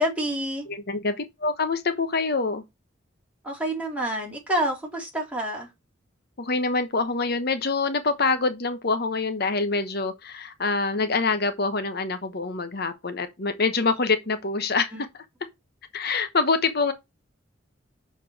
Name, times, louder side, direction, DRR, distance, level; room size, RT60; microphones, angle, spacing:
voice 1, 0.0-0.7 3.4-5.7 14.9-15.0, equal, 5° right, 3.5 m, -28 dB
voice 2, 0.7-2.6 6.4-15.1 15.9-16.9, left 4 dB, 55° left, 1.0 m, -25 dB
6.6 x 4.5 x 5.9 m
head